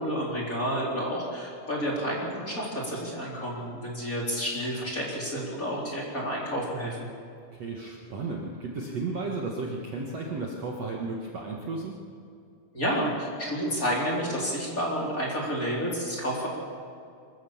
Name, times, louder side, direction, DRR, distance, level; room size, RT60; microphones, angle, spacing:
voice 1, 0.0-7.0 12.7-16.5, equal, 20° left, -4 dB, 3.7 m, -30 dB
voice 2, 7.5-11.9, right 3 dB, 50° right, -2 dB, 2.2 m, -34 dB
25.0 x 14.5 x 7.2 m, 2.4 s
omnidirectional pair, 4.5 m